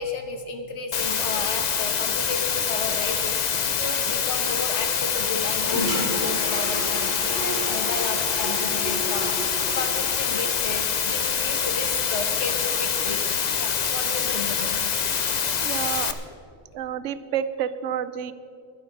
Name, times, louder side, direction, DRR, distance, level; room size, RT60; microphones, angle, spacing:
voice 1, 0.0-13.2 13.6-15.0 15.8-15.9, left 4 dB, 75° left, 5 dB, 1.6 m, -33 dB
Water, 0.9-16.1, left 7 dB, 45° left, 0.7 m, -25 dB
Toilet flush, 5.2-12.1, right 1 dB, 20° left, 3.9 m, -34 dB
voice 2, 15.6-16.2 16.7-18.3, right 9 dB, 90° right, 13 dB, 1.0 m, -29 dB
12.0 x 10.5 x 6.5 m, 2.3 s
omnidirectional pair, 1.2 m